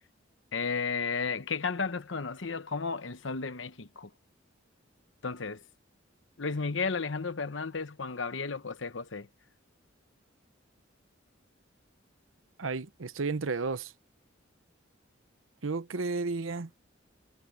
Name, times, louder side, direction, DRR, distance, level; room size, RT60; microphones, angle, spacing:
voice 1, 0.5-4.1 5.2-5.6 6.4-9.3, left 4 dB, 65° left, 1.0 m, -33 dB
voice 2, 12.6-13.9 15.6-16.7, right 4 dB, 90° right, 0.8 m, -32 dB
head